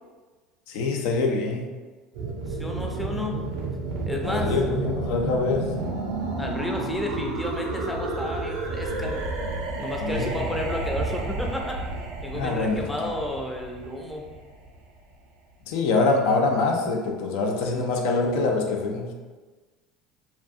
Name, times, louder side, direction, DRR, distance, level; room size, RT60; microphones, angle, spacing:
voice 1, 0.7-1.7 4.2-5.7 10.0-10.3 12.3-13.1 15.7-19.1, left 3 dB, 75° left, 2 dB, 0.4 m, -25 dB
sound 1, 2.1-14.9, right 2 dB, 75° right, 0.4 m, -31 dB
voice 2, 2.5-3.4 4.1-4.5 6.4-9.2 9.8-11.8 12.2-14.4, left 1 dB, 5° left, 0 dB, 0.5 m, -32 dB
2.5 x 2.3 x 2.5 m, 1.3 s
supercardioid pair, 90°, 0 cm